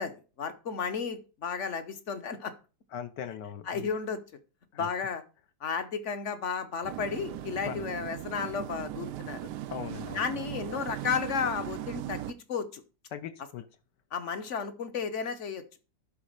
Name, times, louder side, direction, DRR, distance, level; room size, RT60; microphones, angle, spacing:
voice 1, 0.0-2.5 3.7-4.2 4.8-5.2 5.6-9.5 10.1-12.8 14.1-15.6, left 6 dB, 50° left, 11 dB, 1.1 m, -33 dB
voice 2, 2.9-3.9 4.7-4.9 7.6-7.8 9.7-10.3 13.1-13.6, left 9 dB, 70° left, 10 dB, 1.3 m, -39 dB
sound 1, 6.8-12.3, right 13 dB, 75° right, 1.1 m, -38 dB
11.5 x 4.0 x 6.5 m, 0.34 s
omnidirectional pair, 2.0 m